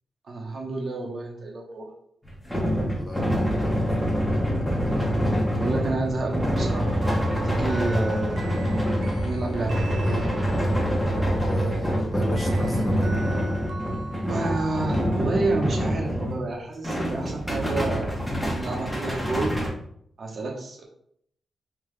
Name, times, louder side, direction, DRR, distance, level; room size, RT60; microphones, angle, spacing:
voice 1, 0.3-1.9 5.6-7.0 7.3-8.4 9.2-9.8 14.3-18.2 18.5-19.5 20.2-20.8, right 2 dB, 55° right, 0 dB, 0.8 m, -29 dB
sound 1, 2.2-16.5 16.8-19.7, equal, 5° left, 1.0 m, -25 dB
voice 2, 2.9-4.1 10.0-10.3 11.4-13.1, equal, 35° left, 1 dB, 0.8 m, -35 dB
sound 2, 7.0-10.8 12.4-16.1, right 3 dB, 75° right, 0.5 m, -42 dB
3.6 x 2.8 x 3.2 m, 0.69 s
cardioid pair, 100°, 0 cm